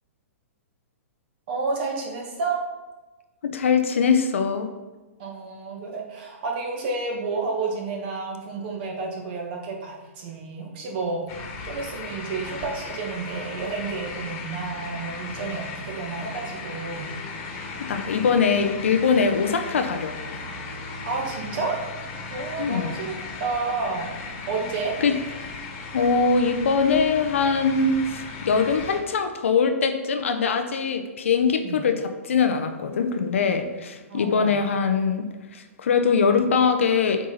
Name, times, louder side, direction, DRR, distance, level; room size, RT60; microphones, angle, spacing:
voice 1, 1.5-2.6 5.2-11.2 11.6-17.1 21.0-21.7 22.3-24.1 24.5-24.9 31.6-31.8 34.1-34.6, right 4 dB, 45° right, 0 dB, 1.7 m, -30 dB
voice 2, 3.4-4.7 17.9-20.2 22.6-22.9 25.0-25.1 25.9-32.0 32.2-35.2 35.5-37.2, left 5 dB, 60° left, 6 dB, 0.7 m, -22 dB
sound 1, 11.3-29.0, left 3 dB, 35° left, 1.5 m, -36 dB
7.9 x 3.7 x 4.0 m, 1.2 s
figure-of-eight pair, 110°, 8 cm